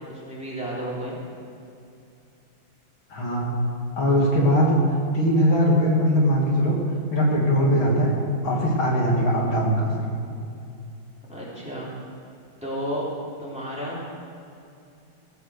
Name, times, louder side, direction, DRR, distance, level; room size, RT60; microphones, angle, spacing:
voice 1, 0.1-1.2 11.3-11.9 12.6-13.0 13.4-14.0, equal, 5° right, -6 dB, 3.1 m, -32 dB
voice 2, 3.1-3.5 4.0-4.8 5.1-6.8 7.1-8.1 8.4-9.9, equal, 75° left, -2 dB, 2.9 m, -20 dB
16.5 x 8.1 x 6.5 m, 2.6 s
omnidirectional pair, 2.3 m